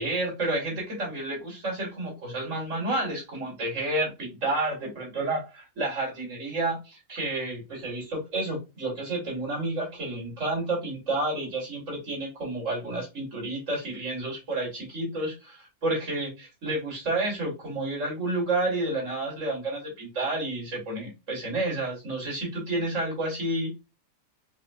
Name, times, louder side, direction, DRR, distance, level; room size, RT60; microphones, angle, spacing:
voice 1, 0.0-23.8, right 2 dB, 70° right, -3 dB, 2.8 m, -30 dB
5.5 x 2.7 x 2.3 m, 0.27 s
omnidirectional pair, 1.3 m